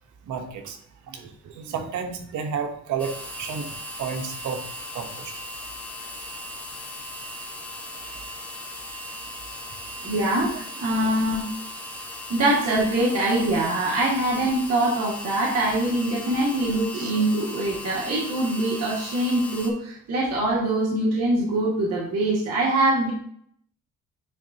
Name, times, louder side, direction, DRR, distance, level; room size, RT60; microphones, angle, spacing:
voice 1, 0.3-0.8 1.1-3.7 4.0-4.6 4.9-5.3 16.9-17.2, right 6 dB, 75° right, 5 dB, 1.1 m, -31 dB
sound 1, 3.0-19.7, left 1 dB, 5° left, 1.4 m, -38 dB
voice 2, 10.0-11.5 12.3-23.1, right 1 dB, 55° right, -5 dB, 1.9 m, -23 dB
9.6 x 3.8 x 2.8 m, 0.64 s
cardioid pair, 90°, 30 cm